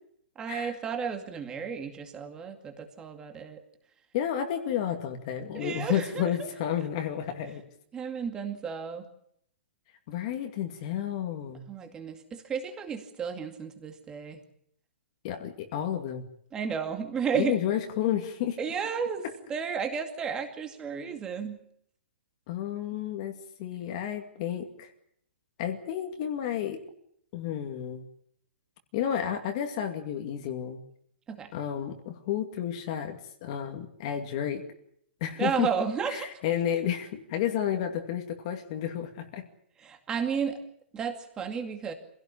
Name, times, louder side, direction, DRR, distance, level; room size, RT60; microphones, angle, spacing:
voice 1, 0.4-3.6 5.5-6.5 7.9-9.1 11.7-14.4 16.5-17.6 18.6-19.2 19.5-21.6 31.3-31.5 35.4-36.3 39.8-40.6 40.9-41.9, right 6 dB, 10° right, 6 dB, 2.3 m, -32 dB
voice 2, 4.1-7.6 10.1-11.6 15.2-16.3 17.3-18.6 22.5-24.9 25.6-26.8 27.3-28.0 28.9-30.8 31.5-34.6 35.2-35.7 36.1-39.4, left 10 dB, 30° left, 5 dB, 2.3 m, -31 dB
26.0 x 17.0 x 8.5 m, 0.69 s
hypercardioid pair, 175°, 7 cm